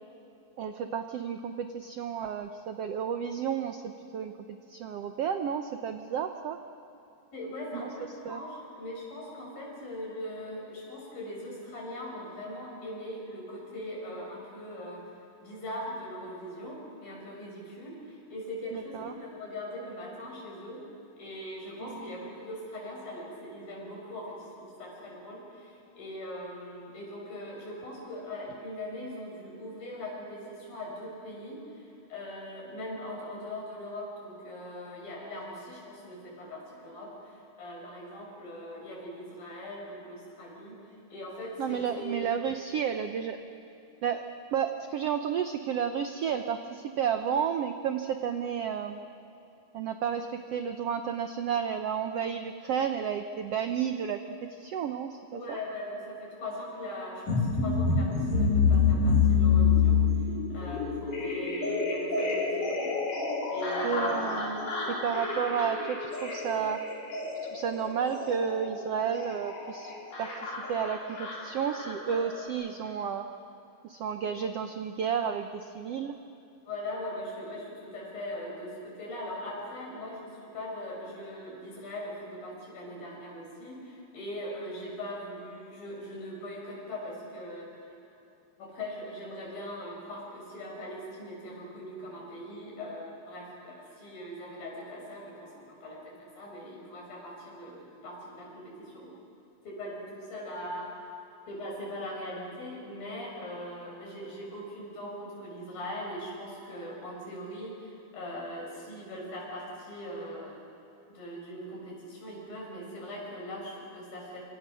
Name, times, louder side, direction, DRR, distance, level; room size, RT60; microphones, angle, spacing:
voice 1, 0.6-6.6 7.7-7.9 8.2-8.4 18.7-19.1 21.8-22.1 41.6-43.4 44.0-44.2 44.5-49.1 49.7-55.6 63.8-66.8 67.4-69.9 70.2-73.3 73.8-76.1, right 7 dB, 85° right, 7 dB, 1.3 m, -32 dB
voice 2, 7.3-15.0 15.4-20.8 21.2-42.2 55.3-62.9 63.5-64.3 64.9-65.1 76.7-87.7 88.6-99.1 99.6-101.1 101.5-110.6 111.1-114.4, left 1 dB, 90° left, -1 dB, 7.7 m, -41 dB
sound 1, 57.3-72.5, left 5 dB, 65° left, 5.4 m, -28 dB
26.5 x 26.5 x 6.3 m, 2.8 s
omnidirectional pair, 4.0 m